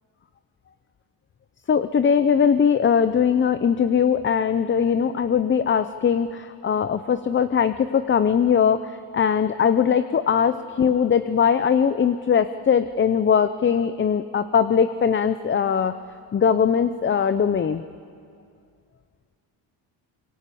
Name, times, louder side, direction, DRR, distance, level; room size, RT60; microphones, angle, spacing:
voice 1, 1.7-8.8 9.1-16.0 16.3-17.8, left 7 dB, 25° left, 12 dB, 0.6 m, -20 dB
24.0 x 24.0 x 8.4 m, 2.3 s
cardioid pair, 115°, 47 cm